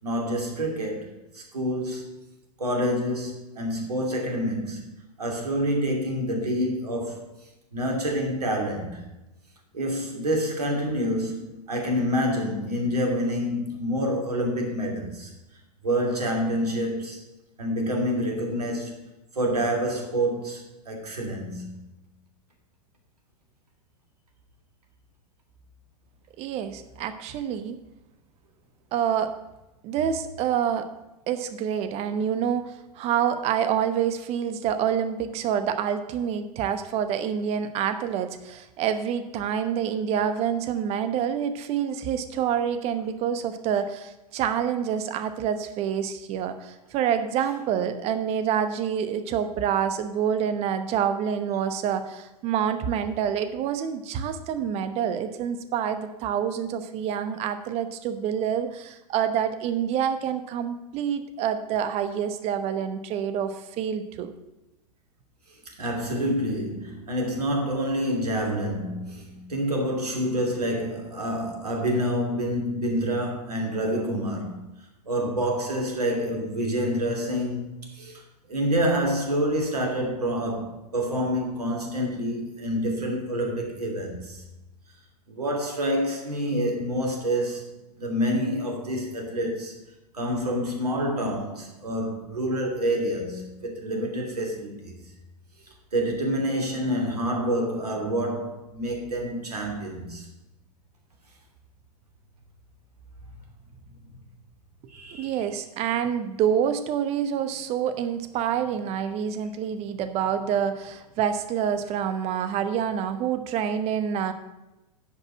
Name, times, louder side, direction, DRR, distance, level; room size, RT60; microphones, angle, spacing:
voice 1, 0.0-2.2 2.6-7.3 7.7-9.0 9.7-15.3 15.8-17.3 17.6-18.9 19.3-21.9 65.6-74.6 75.1-78.2 78.5-84.4 85.3-89.7 90.1-95.0 95.9-100.3 104.9-105.4, equal, 75° right, 2.7 m, -27 dB
voice 2, 26.4-27.8 28.9-29.3 29.8-30.9 31.3-64.3 105.2-114.3, right 8 dB, 30° right, 0.9 m, -27 dB
10.5 x 5.3 x 7.3 m
figure-of-eight pair, 100°, 20 cm